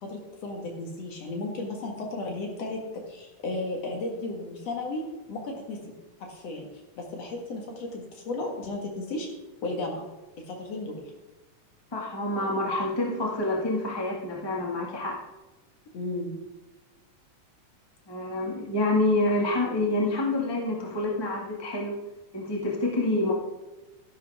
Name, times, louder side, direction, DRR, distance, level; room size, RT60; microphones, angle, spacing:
voice 1, 0.0-2.8 3.1-5.0 5.3-5.9 6.2-6.7 7.0-9.3 9.6-10.1 10.5-11.0 15.9-16.4, left 2 dB, 55° left, 1 dB, 2.7 m, -34 dB
voice 2, 11.9-15.2 18.1-22.0 22.3-23.3, left 2 dB, 10° left, -2 dB, 1.3 m, -27 dB
13.5 x 11.0 x 3.6 m, 1.1 s
omnidirectional pair, 3.7 m